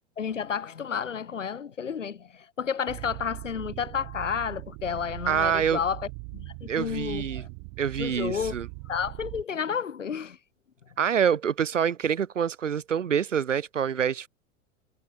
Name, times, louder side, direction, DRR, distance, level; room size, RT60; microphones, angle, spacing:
voice 1, 0.2-7.5 8.0-8.5 8.9-10.4, left 7 dB, 75° left, 6.4 m, -31 dB
sound 1, 2.9-9.4, right 40 dB or more, 45° right, 5.5 m, -40 dB
voice 2, 5.3-5.8 6.7-7.5 7.8-8.7 11.0-14.3, right 8 dB, 75° right, 2.8 m, -26 dB
figure-of-eight pair, 90°, 38 cm